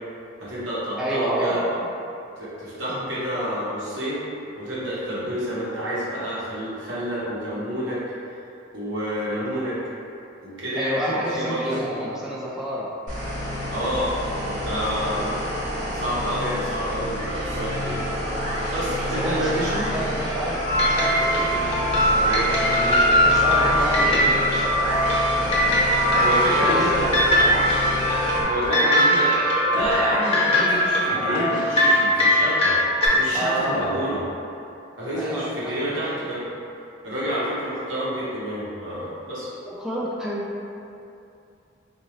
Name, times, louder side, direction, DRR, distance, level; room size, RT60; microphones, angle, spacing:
voice 1, 0.4-1.6 2.4-4.2 4.6-8.0 8.7-9.8 10.4-11.8 13.7-14.1 14.4-15.3 15.9-18.2 18.7-19.9 21.4-21.6 22.2-22.5 26.1-27.1 28.4-29.3 29.7-32.8 33.1-34.2 35.0-36.4 37.0-39.5, equal, 85° right, -9 dB, 1.2 m, -28 dB
voice 2, 1.0-1.7 2.9-3.1 10.7-12.9 15.0-15.5 19.1-21.5 22.7-24.8 26.5-27.3 33.3-34.2 35.2-36.3 39.6-40.5, equal, 5° right, -6 dB, 0.3 m, -29 dB
sound 1, 13.1-28.4, left 1 dB, 40° right, 1.1 m, -30 dB
sound 2, 17.2-32.3, equal, 65° right, 0.9 m, -30 dB
sound 3, 20.6-33.1, equal, 30° left, 0.6 m, -21 dB
3.8 x 2.6 x 3.0 m, 2.6 s
head